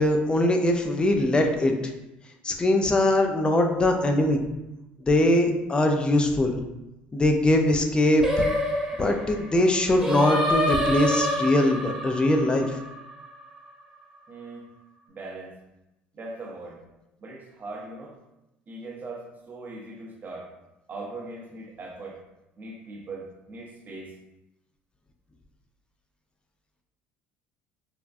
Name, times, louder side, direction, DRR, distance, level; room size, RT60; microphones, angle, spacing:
voice 1, 0.0-1.7 2.4-4.4 5.0-6.6 7.1-8.2 9.0-12.7, left 1 dB, 20° left, 4 dB, 0.4 m, -22 dB
Singing, 8.2-13.5, equal, 5° right, 1.0 m, -27 dB
voice 2, 14.3-14.6 15.1-15.6 16.1-16.8 17.2-18.2 18.7-20.5 20.9-22.2 22.6-24.1, right 2 dB, 35° right, 0 dB, 0.7 m, -40 dB
3.4 x 2.2 x 2.5 m, 0.94 s
supercardioid pair, 85°, 5 cm